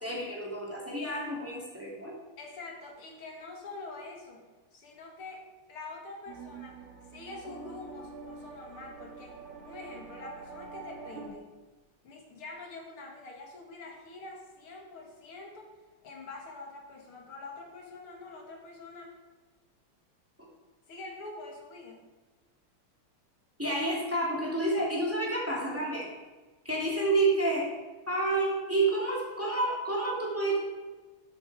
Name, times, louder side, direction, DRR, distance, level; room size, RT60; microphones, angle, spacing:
voice 1, 0.0-2.1 23.6-26.1 26.6-27.7 28.1-30.6, right 2 dB, 5° right, -3 dB, 2.5 m, -29 dB
voice 2, 2.4-4.4 4.7-6.8 7.1-11.6 12.0-15.7 16.0-19.2 20.9-22.1, left 3 dB, 75° left, 1 dB, 2.8 m, -45 dB
sound 1, 6.3-11.3, right 4 dB, 80° right, 2.6 m, -46 dB
13.0 x 8.4 x 4.7 m, 1.3 s
omnidirectional pair, 2.4 m